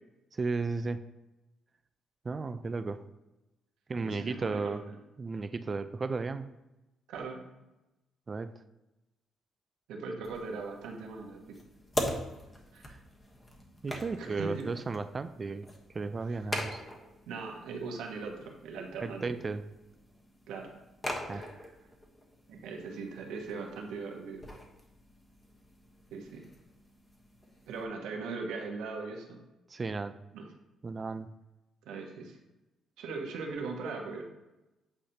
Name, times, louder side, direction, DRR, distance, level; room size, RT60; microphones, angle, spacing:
voice 1, 0.3-1.0 2.2-3.0 3.9-4.8 5.2-6.5 8.3-8.5 12.9-13.0 13.8-15.7 15.9-16.8 19.0-19.6 21.3-21.4 29.7-30.1 30.8-31.3, right 4 dB, 35° right, 11 dB, 0.4 m, -34 dB
voice 2, 4.0-4.9 7.1-7.4 9.9-11.6 12.7-12.9 14.2-14.7 16.3-16.4 17.3-19.4 20.5-20.7 21.3-21.5 22.5-24.5 26.1-26.4 27.7-29.4 30.3-30.4 31.8-32.4 33.0-34.2, right 4 dB, 90° right, 1 dB, 1.2 m, -39 dB
sound 1, 10.2-27.8, left 1 dB, 20° left, 1.2 m, -43 dB
8.5 x 5.0 x 2.9 m, 1.0 s
cardioid pair, 90°, 0 cm